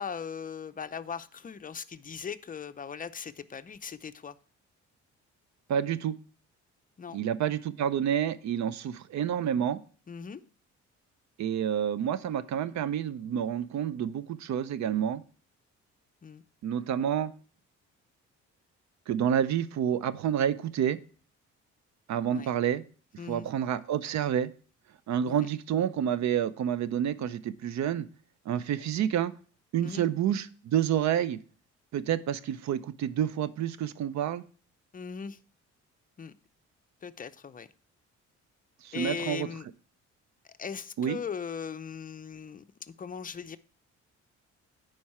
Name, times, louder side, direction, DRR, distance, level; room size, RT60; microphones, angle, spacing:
voice 1, 0.0-4.4 7.0-7.2 10.1-10.4 16.2-16.4 22.3-22.5 23.2-23.5 25.3-25.5 29.8-30.0 34.9-35.4 36.2-36.3 37.0-37.7 38.9-39.7 40.6-43.6, left 6 dB, 30° left, 12 dB, 0.5 m, -39 dB
voice 2, 5.7-6.2 7.1-9.8 11.4-15.2 16.6-17.3 19.1-21.0 22.1-22.8 23.3-24.5 25.1-28.1 28.5-29.3 29.7-31.4 31.9-34.4 38.8-39.5 41.0-41.2, right 9 dB, 65° right, 16 dB, 0.6 m, -29 dB
10.5 x 4.7 x 4.3 m, 0.41 s
cardioid pair, 90°, 30 cm